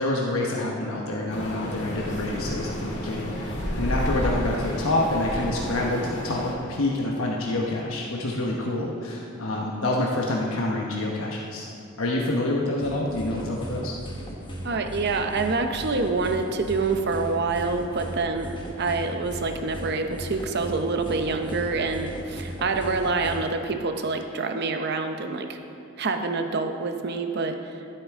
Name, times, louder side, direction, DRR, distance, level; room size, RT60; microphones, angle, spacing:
voice 1, 0.0-2.7 3.0-11.7 12.0-13.9, left 2 dB, 85° left, -2 dB, 1.0 m, -27 dB
sound 1, 1.3-6.5, equal, 60° left, 1.8 m, -31 dB
sound 2, 12.8-23.4, equal, 25° left, 1.3 m, -37 dB
voice 2, 14.6-25.6 26.0-27.6, right 3 dB, 50° right, 6 dB, 0.7 m, -26 dB
13.0 x 8.0 x 3.6 m, 2.6 s
head